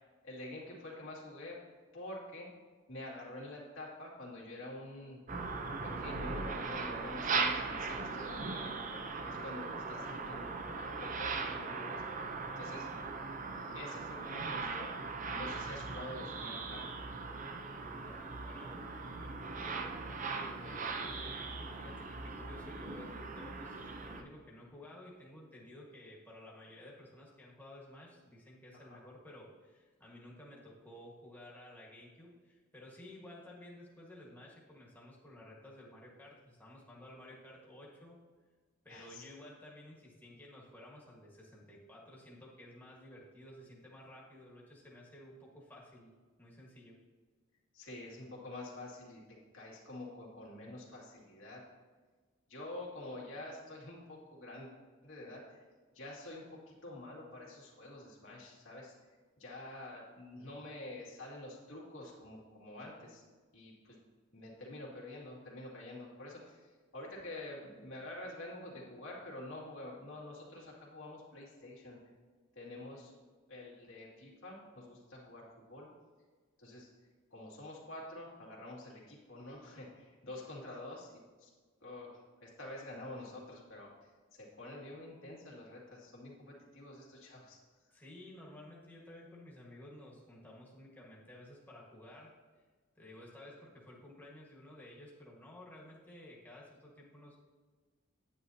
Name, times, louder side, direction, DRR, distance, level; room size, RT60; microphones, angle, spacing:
voice 1, 0.2-1.6 1.9-2.5 2.9-5.2 5.8-8.7 9.2-12.0 12.6-12.9 13.7-14.9 15.3-16.8 28.7-29.0 38.9-39.2 47.7-49.2 49.5-51.6 52.5-54.7 55.0-55.6 55.9-59.0 59.4-63.2 63.5-64.0 64.3-72.0 72.6-73.1 73.5-75.9 76.6-76.9 77.3-81.1 81.4-81.5 81.8-83.9 84.3-87.6, left 1 dB, 80° left, -4 dB, 2.3 m, -47 dB
sound 1, 5.3-24.2, right 4 dB, 40° right, 0.6 m, -39 dB
voice 2, 17.8-38.2 38.8-46.1 46.4-47.0 87.9-92.6 92.9-97.4, left 1 dB, 10° left, -4 dB, 1.5 m, -54 dB
9.3 x 9.1 x 2.8 m, 1.4 s
head